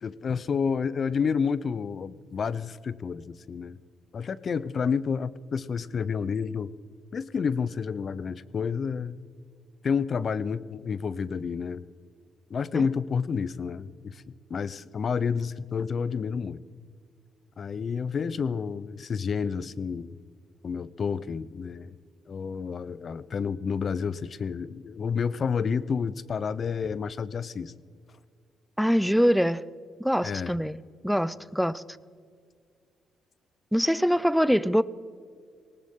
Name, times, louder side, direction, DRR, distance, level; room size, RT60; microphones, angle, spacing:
voice 1, 0.0-3.8 4.1-6.7 7.1-9.2 9.8-11.8 12.5-14.2 14.5-16.6 17.6-20.2 20.6-22.0 22.3-27.7 30.2-30.6, left 6 dB, 45° left, 17 dB, 0.6 m, -30 dB
voice 2, 28.8-29.6 30.0-31.8 33.7-34.8, equal, ahead, 17 dB, 0.5 m, -24 dB
19.0 x 18.5 x 3.7 m, 2.1 s
cardioid pair, 90°, 0 cm